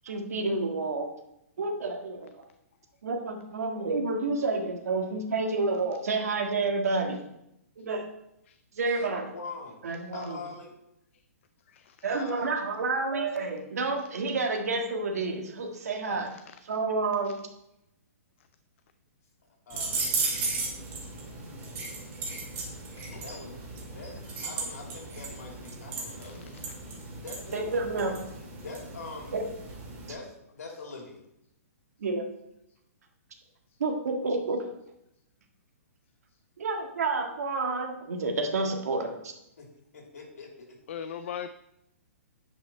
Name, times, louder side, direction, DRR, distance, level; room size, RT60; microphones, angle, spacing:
voice 1, 0.1-1.1 1.6-2.3 3.0-7.2 7.8-8.0 8.8-9.3 9.8-10.4 12.0-16.3 16.7-17.4 27.5-28.1 29.3-29.5 32.0-32.3 33.8-34.7 36.6-39.3, right 3 dB, 80° right, 3 dB, 1.8 m, -29 dB
voice 2, 8.9-9.8 10.1-10.7 12.1-12.5 16.1-16.3 19.7-20.0 23.1-26.4 27.2-28.3 28.6-29.3 30.0-31.2 39.6-39.7 39.9-40.8, left 3 dB, 80° left, 1 dB, 2.8 m, -43 dB
Various Handcuff Sounds, 19.7-30.1, right 3 dB, 25° right, 2.2 m, -36 dB
voice 3, 22.6-23.4 26.2-26.4 40.9-41.5, left 8 dB, 50° left, 10 dB, 0.4 m, -41 dB
9.4 x 5.6 x 4.4 m, 0.82 s
hypercardioid pair, 155°, 8 cm